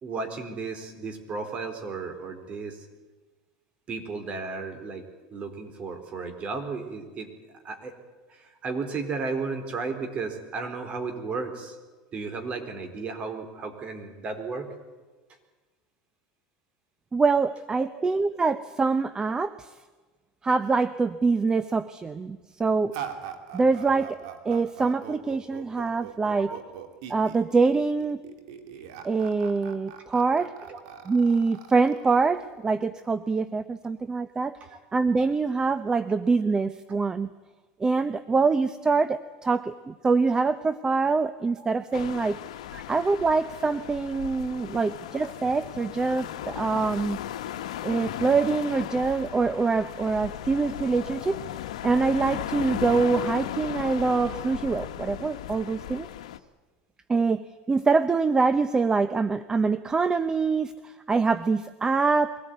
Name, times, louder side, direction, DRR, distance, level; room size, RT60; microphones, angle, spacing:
voice 1, 0.0-2.9 3.9-5.0 5.3-7.3 7.6-8.0 8.3-11.8 12.1-14.7 17.8-17.9 26.3-26.6 30.6-30.8 34.6-34.8 36.1-36.2 36.9-37.0 42.7-42.8, right 4 dB, 40° right, 6 dB, 4.3 m, -34 dB
voice 2, 17.1-19.7 20.4-23.0 23.5-26.5 27.1-28.2 29.0-30.6 31.1-34.6 34.9-37.3 37.8-42.4 42.9-47.2 47.8-51.4 51.8-56.1 57.1-62.4, right 4 dB, 20° right, 13 dB, 0.8 m, -25 dB
sound 1, 22.9-32.9, right 9 dB, 75° right, 2.8 m, -41 dB
sound 2, 41.9-56.4, left 12 dB, 85° left, 1.1 m, -36 dB
23.0 x 17.5 x 9.5 m, 1.3 s
supercardioid pair, 100°, 3 cm